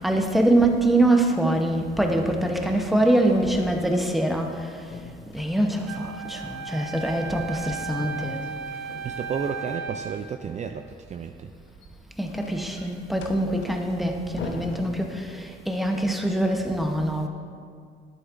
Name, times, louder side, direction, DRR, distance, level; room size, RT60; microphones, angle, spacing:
voice 1, 0.0-4.8 5.3-8.4 12.2-17.3, right 1 dB, ahead, 3 dB, 0.8 m, -24 dB
sound 1, 1.5-1.8 2.1-4.6 4.9-6.1 7.9-9.5 11.5-15.7, left 4 dB, 70° left, 0.8 m, -42 dB
Wind instrument woodwind instrument, 5.9-10.3, right 5 dB, 90° right, 0.6 m, -35 dB
voice 2, 9.0-11.5, right 7 dB, 35° right, 6 dB, 0.3 m, -32 dB
10.5 x 8.0 x 2.5 m, 2.1 s
cardioid pair, 90°, 20 cm